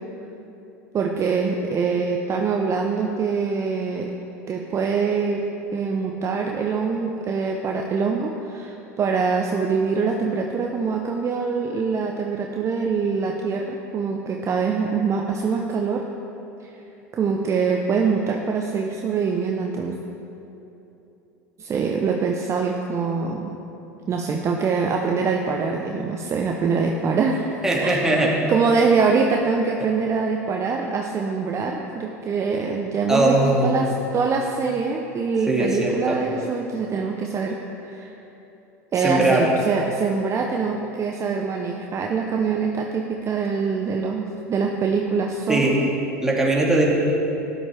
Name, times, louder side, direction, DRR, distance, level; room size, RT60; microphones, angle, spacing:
voice 1, 0.9-4.1 4.5-5.4 5.7-16.0 17.1-20.0 21.6-23.5 24.1-27.5 27.8-38.1 38.9-45.9, right 5 dB, 35° right, 2 dB, 0.8 m, -24 dB
voice 2, 27.6-28.4 33.1-33.8 35.5-36.2 39.0-39.5 45.5-45.7 46.2-46.9, right 2 dB, 5° right, -4 dB, 2.4 m, -20 dB
13.0 x 11.0 x 3.5 m, 3.0 s
hypercardioid pair, 85°, 9 cm